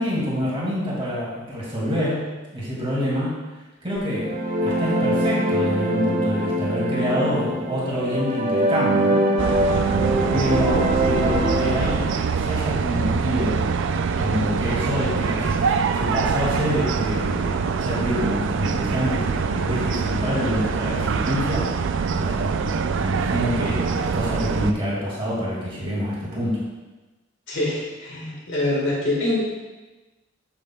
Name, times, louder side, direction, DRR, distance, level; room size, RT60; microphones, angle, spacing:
voice 1, 0.0-3.4 3.8-4.3 4.6-9.3 10.3-26.6, equal, 30° right, -7 dB, 2.3 m, -27 dB
sound 1, 4.0-12.0, right 1 dB, 50° right, 1.5 m, -23 dB
sound 2, 9.4-24.7, right 5 dB, 65° right, 0.4 m, -24 dB
voice 2, 27.5-29.4, left 1 dB, 65° left, -3 dB, 1.6 m, -24 dB
8.5 x 7.6 x 2.3 m, 1.2 s
head